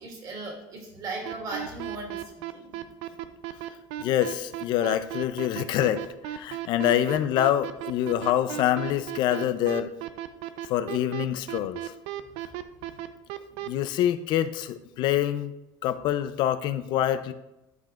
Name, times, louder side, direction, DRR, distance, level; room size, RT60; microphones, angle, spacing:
voice 1, 0.0-2.8, right 2 dB, 45° right, 1 dB, 2.3 m, -37 dB
sound 1, 1.3-13.7, right 14 dB, 80° right, 0.5 m, -34 dB
voice 2, 4.0-9.9 10.7-11.8 13.7-15.5 15.8-17.3, left 11 dB, 55° left, 12 dB, 0.5 m, -26 dB
12.0 x 4.9 x 2.4 m, 0.94 s
cardioid pair, 145°, 9 cm